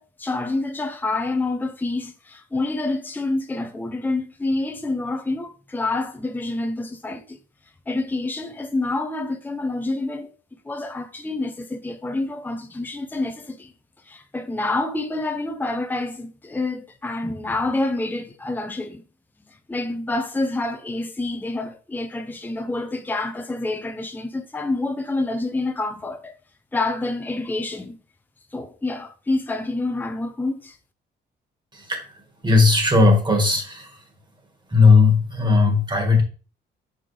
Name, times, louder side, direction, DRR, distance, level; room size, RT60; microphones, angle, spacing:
voice 1, 0.0-7.4 7.9-10.3 10.6-13.7 14.1-19.0 19.5-26.4 26.7-28.0 28.5-30.8, left 2 dB, 10° left, 0.7 m, -27 dB
voice 2, 32.4-33.8 34.7-36.2, left 4 dB, 20° right, 1.9 m, -16 dB
5.4 x 5.2 x 3.4 m
cardioid pair, 90°, 20 cm